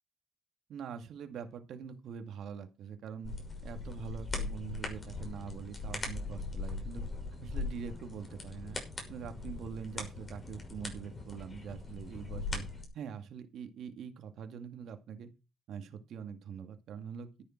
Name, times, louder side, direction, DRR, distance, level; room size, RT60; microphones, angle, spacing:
voice 1, 0.7-3.3 3.6-7.0 7.4-8.8 9.1-12.7 12.9-15.3 15.7-17.3, right 7 dB, 75° right, 7 dB, 2.2 m, -44 dB
sound 1, 3.2-12.8, left 3 dB, 35° left, 6.0 m, -40 dB
13.0 x 10.5 x 4.6 m, 0.29 s
cardioid pair, 90°, 0 cm